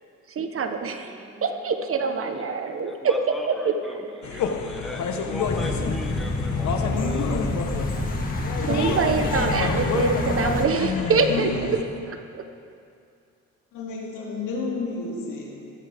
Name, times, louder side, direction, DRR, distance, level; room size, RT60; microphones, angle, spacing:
voice 1, 0.3-1.2 1.4-3.4 3.6-3.7 4.3-4.4 8.7-11.8 12.0-12.4, right 5 dB, 45° right, 7 dB, 1.0 m, -25 dB
voice 2, 1.1-2.5 2.8-7.5, left 1 dB, ahead, 0 dB, 1.7 m, -39 dB
sound 1, 4.2-11.8, left 6 dB, 70° left, 1.1 m, -29 dB
sound 2, 5.4-10.7, left 2 dB, 30° left, 1.7 m, -27 dB
voice 3, 8.6-9.2 11.3-11.5 13.7-15.5, left 4 dB, 90° left, -3 dB, 2.7 m, -31 dB
15.0 x 13.0 x 3.5 m, 2.4 s
cardioid pair, 90°, 30 cm